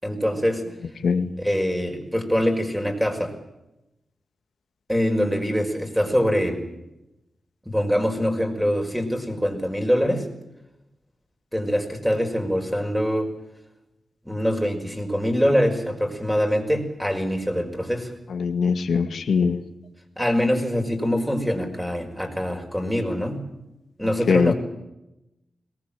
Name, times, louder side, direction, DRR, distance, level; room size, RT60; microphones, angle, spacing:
voice 1, 0.0-0.7 1.4-3.3 4.9-6.6 7.7-10.3 11.5-13.3 14.2-18.1 20.2-23.4 24.0-24.5, equal, 5° right, 3 dB, 5.6 m, -24 dB
voice 2, 18.3-19.6 24.3-24.5, left 5 dB, 85° left, 8 dB, 2.0 m, -21 dB
22.5 x 19.0 x 9.1 m, 0.90 s
wide cardioid pair, 90°, 0 cm